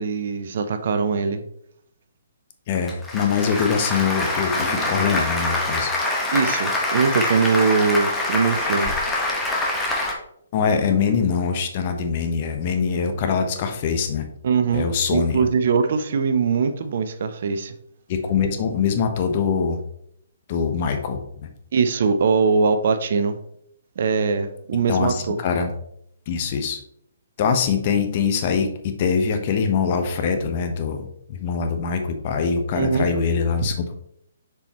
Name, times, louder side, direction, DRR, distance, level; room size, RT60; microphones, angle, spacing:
voice 1, 0.0-1.4 6.3-8.9 14.4-17.7 21.7-23.4 24.0-25.4 32.7-33.1, right 5 dB, 55° right, 9 dB, 0.6 m, -21 dB
voice 2, 2.7-5.9 10.5-14.3 14.7-15.4 18.1-19.8 20.5-21.5 24.9-25.7 26.3-26.8 27.4-28.7 29.0-33.9, left 6 dB, 40° left, 6 dB, 0.9 m, -23 dB
Applause, 2.7-10.1, left 2 dB, 10° left, 1.2 m, -25 dB
6.8 x 4.7 x 3.0 m, 0.72 s
figure-of-eight pair, 130°, 0 cm